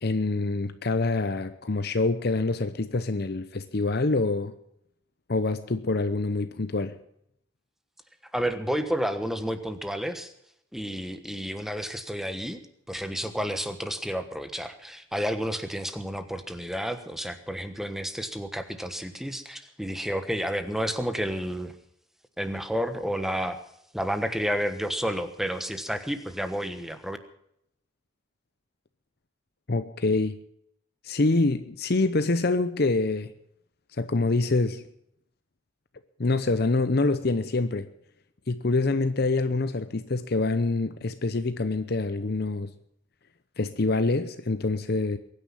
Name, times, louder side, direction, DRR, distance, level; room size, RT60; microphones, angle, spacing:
voice 1, 0.0-4.5 5.3-7.0 29.7-30.4 31.0-33.3 34.0-34.9 36.2-37.9 38.5-42.7 43.6-45.2, left 3 dB, 50° left, 0.8 m, -26 dB
voice 2, 8.3-10.3 10.7-12.6 12.9-21.7 22.4-23.6 23.9-27.2, equal, ahead, 1.3 m, -31 dB
22.5 x 9.7 x 5.7 m
head